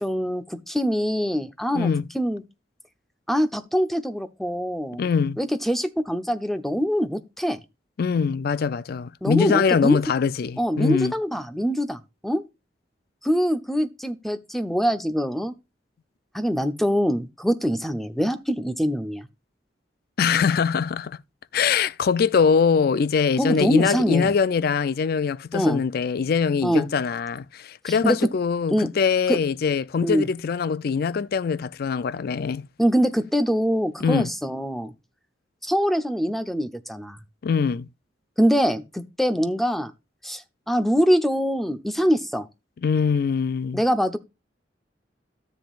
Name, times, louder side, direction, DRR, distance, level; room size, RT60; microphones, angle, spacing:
voice 1, 0.0-2.4 3.3-5.1 5.4-7.6 9.2-10.0 10.6-12.4 13.2-15.5 16.3-19.3 23.4-24.3 25.5-25.8 26.6-26.9 27.9-28.2 28.7-28.9 29.3-29.4 30.0-30.3 32.8-34.9 35.6-37.2 38.4-39.9 40.2-42.5 43.7-44.2, equal, ahead, 0.7 m, -24 dB
voice 2, 1.7-2.1 5.0-5.4 8.0-11.1 20.2-21.2 21.5-32.7 34.0-34.3 37.4-37.9 42.8-43.8, left 6 dB, 55° left, 0.4 m, -23 dB
13.0 x 7.3 x 2.4 m
head